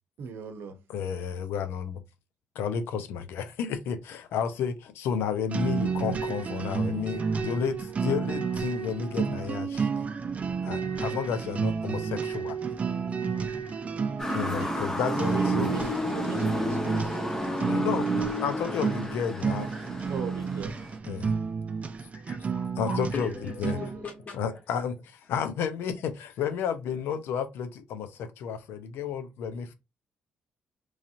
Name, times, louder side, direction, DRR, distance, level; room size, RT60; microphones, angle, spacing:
voice 1, 0.2-0.8 15.0-17.4 20.1-20.8, right 6 dB, 80° right, 0.7 m, -38 dB
voice 2, 0.9-2.0 2.6-9.9 10.6-12.6 14.3-15.7 17.7-19.7 21.1-21.4 22.8-23.3 23.6-23.8 24.3-29.7, left 7 dB, 85° left, 0.5 m, -32 dB
sound 1, 5.5-24.0, right 5 dB, 40° right, 0.5 m, -31 dB
Motor vehicle (road) / Siren, 14.2-21.0, equal, 10° left, 0.8 m, -31 dB
voice 3, 22.1-24.4, left 4 dB, 45° left, 1.0 m, -39 dB
3.1 x 2.7 x 2.5 m
cardioid pair, 80°, 4 cm